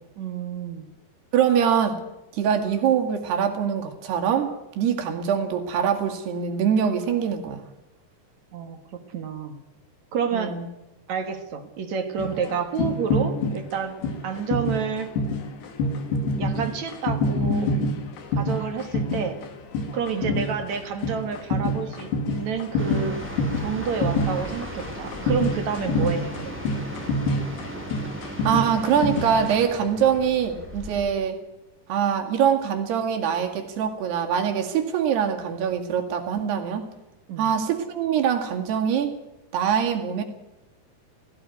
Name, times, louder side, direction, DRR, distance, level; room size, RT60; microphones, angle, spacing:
voice 1, 0.2-0.9 8.5-9.6 10.1-10.6 11.1-14.0 14.2-15.1 16.4-17.7 18.4-19.4 19.9-23.2 23.6-26.5 37.3-37.5, right 6 dB, 55° right, 7 dB, 2.4 m, -29 dB
voice 2, 1.3-2.0 2.3-7.6 10.3-10.7 20.1-20.4 28.4-31.4 31.9-36.9 37.4-39.2 39.5-40.2, right 8 dB, 80° right, 3 dB, 4.2 m, -23 dB
sound 1, 12.2-29.5, left 1 dB, 85° left, 4.3 m, -27 dB
sound 2, 22.8-31.1, right 1 dB, 5° right, 2.7 m, -37 dB
17.0 x 17.0 x 9.3 m, 0.95 s
omnidirectional pair, 4.7 m